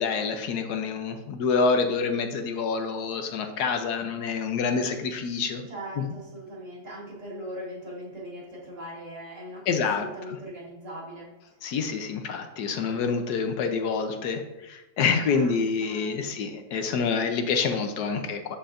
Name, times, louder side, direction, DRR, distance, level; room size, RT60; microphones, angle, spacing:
voice 1, 0.0-5.6 6.0-6.1 9.7-10.1 11.6-18.6, left 5 dB, 80° left, 6 dB, 1.3 m, -27 dB
voice 2, 5.7-11.3 15.2-16.3 17.2-17.3 18.2-18.4, equal, 50° right, -5 dB, 2.6 m, -40 dB
12.5 x 4.4 x 2.5 m, 1.0 s
omnidirectional pair, 1.7 m